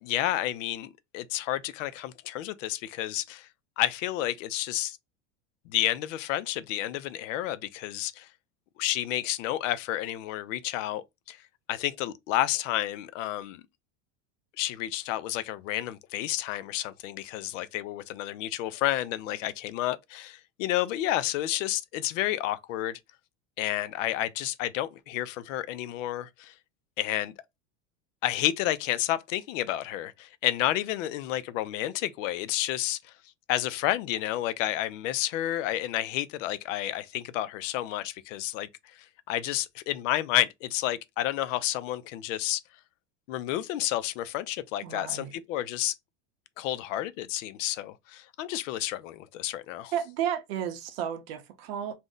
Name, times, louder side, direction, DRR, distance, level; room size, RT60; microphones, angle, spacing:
voice 1, 0.0-3.5 3.8-5.0 5.7-8.3 8.8-11.4 11.7-13.6 14.6-23.0 23.6-26.5 27.0-27.3 28.2-33.0 33.5-38.7 39.3-42.6 43.3-45.9 46.6-49.9, left 14 dB, 85° left, 0.5 m, -30 dB
voice 2, 44.8-45.3 49.9-51.9, right 9 dB, 55° right, 0.6 m, -32 dB
2.6 x 2.1 x 3.6 m
supercardioid pair, 180°, 37 cm